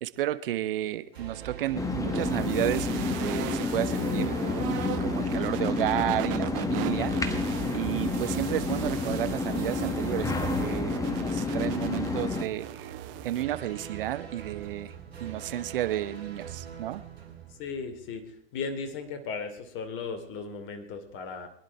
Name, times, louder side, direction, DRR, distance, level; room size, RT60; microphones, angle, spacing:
voice 1, 0.0-4.3 5.0-7.1 7.7-12.9 13.2-14.9 15.2-17.0, right 13 dB, 60° right, 14 dB, 1.0 m, -32 dB
sound 1, 1.1-18.2, right 8 dB, 75° right, 3.6 m, -43 dB
sound 2, 1.8-12.4, left 3 dB, 10° left, 1.4 m, -30 dB
sound 3, 2.1-13.4, right 16 dB, 35° right, 0.9 m, -39 dB
voice 2, 17.6-21.5, left 5 dB, 40° left, 7 dB, 2.8 m, -36 dB
23.0 x 11.0 x 4.7 m, 0.70 s
figure-of-eight pair, 100°, 31 cm